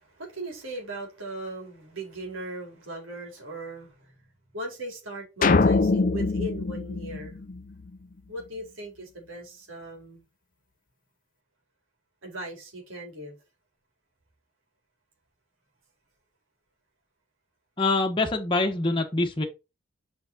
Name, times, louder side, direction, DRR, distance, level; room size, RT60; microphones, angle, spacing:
voice 1, 0.0-4.1 4.5-7.4 8.3-10.2 12.2-13.3, right 1 dB, 85° right, 4.1 m, -38 dB
sound 1, 5.4-7.9, left 3 dB, 45° left, 0.5 m, -23 dB
voice 2, 17.8-19.4, left 2 dB, 25° left, 1.0 m, -25 dB
6.0 x 5.5 x 4.0 m
head